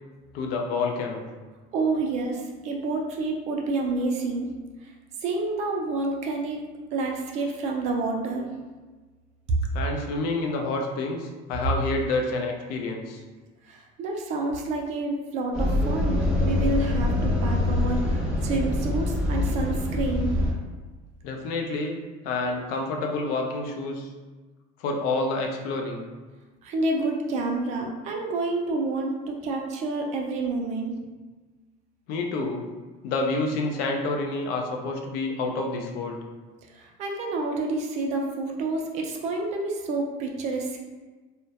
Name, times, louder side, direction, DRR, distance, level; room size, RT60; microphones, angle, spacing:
voice 1, 0.3-1.2 9.7-13.2 21.2-22.0 22.2-24.1 24.8-26.1 32.1-32.7 33.0-36.2, left 3 dB, 65° left, 2 dB, 0.4 m, -28 dB
voice 2, 1.7-4.5 4.8-4.9 5.2-6.7 6.9-8.5 9.5-9.6 13.6-20.3 26.6-30.9 36.7-40.8, right 3 dB, 40° right, 1 dB, 0.4 m, -28 dB
sound 1, 15.5-20.5, left 2 dB, 5° right, 0.6 m, -25 dB
2.2 x 2.1 x 2.7 m, 1.3 s
cardioid pair, 165°, 17 cm